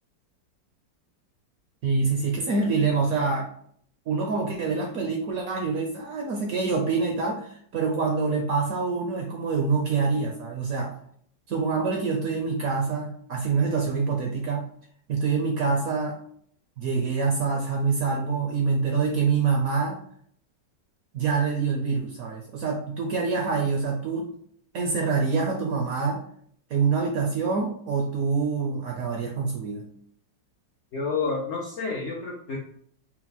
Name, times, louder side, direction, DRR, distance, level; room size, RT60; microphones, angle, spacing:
voice 1, 1.8-3.5 4.1-10.9 11.5-14.6 15.1-16.2 16.8-20.0 21.1-24.3 24.7-26.2 26.7-29.8, right 4 dB, 70° right, 1 dB, 0.9 m, -26 dB
voice 2, 30.9-32.6, left 4 dB, 70° left, -2 dB, 0.6 m, -29 dB
4.3 x 2.0 x 4.0 m, 0.63 s
omnidirectional pair, 2.0 m